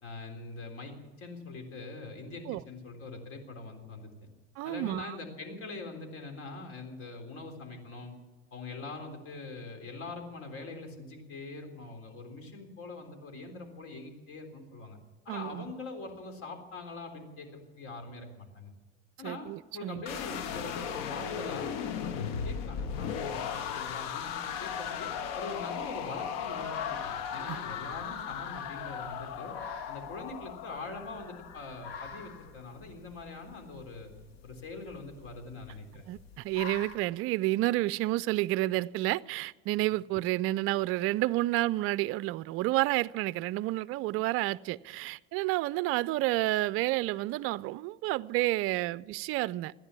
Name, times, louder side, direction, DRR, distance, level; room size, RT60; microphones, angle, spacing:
voice 1, 0.0-4.1 4.6-8.1 8.5-15.0 15.3-18.7 19.2-29.5 29.9-34.1 34.4-36.1, left 3 dB, 50° left, 3.7 m, -43 dB
voice 2, 4.6-5.2 15.3-15.7 19.2-20.0 27.5-27.6 36.1-49.7, right 18 dB, 50° right, 0.4 m, -30 dB
sound 1, 20.1-32.1, left 7 dB, 65° left, 1.4 m, -37 dB
sound 2, 23.0-37.0, left 6 dB, 90° left, 1.7 m, -50 dB
14.5 x 10.5 x 8.3 m
hypercardioid pair, 85°, 30 cm